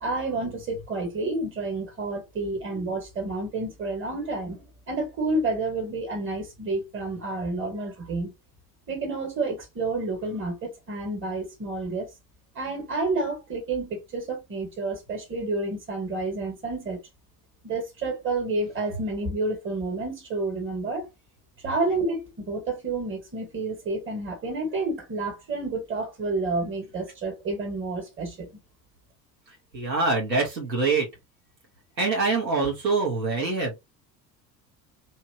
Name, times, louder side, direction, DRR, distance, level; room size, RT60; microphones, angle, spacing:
voice 1, 0.0-8.3 8.9-12.1 12.6-17.0 17.6-21.1 21.6-28.5, right 2 dB, 25° right, 1.7 m, -30 dB
voice 2, 29.7-31.1 32.0-33.8, right 3 dB, 85° right, 1.4 m, -24 dB
3.0 x 2.8 x 2.8 m
figure-of-eight pair, 65°, 50 cm